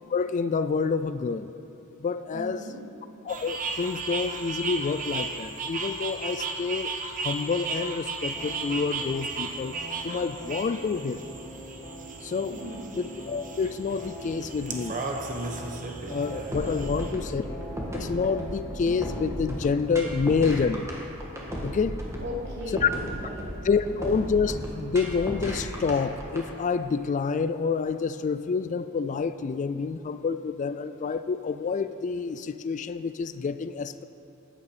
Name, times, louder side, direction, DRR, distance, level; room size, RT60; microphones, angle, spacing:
voice 1, 0.1-1.5 2.0-2.6 3.2-9.8 10.0-11.2 12.2-12.6 13.0-15.0 16.1-17.4 17.9-20.9 21.6-22.0 22.8-22.9 23.6-34.0, left 5 dB, 35° left, 12 dB, 0.3 m, -28 dB
voice 2, 2.3-2.8 12.5-12.9 16.8-17.3 22.2-23.5, left 1 dB, 55° right, -4 dB, 3.0 m, -38 dB
sound 1, 3.3-17.1, right 3 dB, 40° right, 1.1 m, -35 dB
sound 2, 8.3-25.0, right 1 dB, 20° left, 1.5 m, -44 dB
sound 3, 16.5-26.4, equal, 15° right, 1.7 m, -35 dB
14.5 x 9.9 x 4.9 m, 2.8 s
head